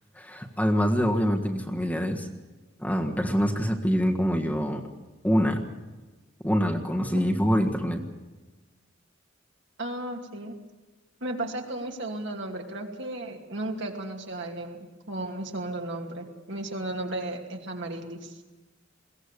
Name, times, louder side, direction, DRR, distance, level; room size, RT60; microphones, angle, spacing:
voice 1, 0.1-2.3 2.8-4.8 5.2-5.6 6.4-8.0, equal, 10° left, 2 dB, 1.5 m, -25 dB
voice 2, 9.8-10.5 11.2-14.8 15.1-18.4, right 1 dB, 60° right, 2 dB, 2.6 m, -34 dB
22.0 x 17.0 x 8.3 m, 1.2 s
head